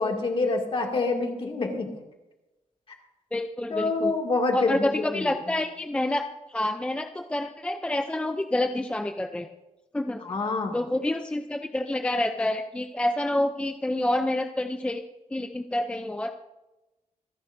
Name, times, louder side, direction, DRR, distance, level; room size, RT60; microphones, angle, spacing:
voice 1, 0.0-1.9 3.7-5.3 10.2-10.8, left 3 dB, 45° left, 2 dB, 2.3 m, -27 dB
voice 2, 3.3-4.1 4.5-9.5 9.9-10.2 10.7-15.0 15.3-16.3, left 1 dB, 10° left, 6 dB, 0.5 m, -28 dB
26.0 x 11.0 x 2.6 m, 1.0 s
wide cardioid pair, 165°, 13 cm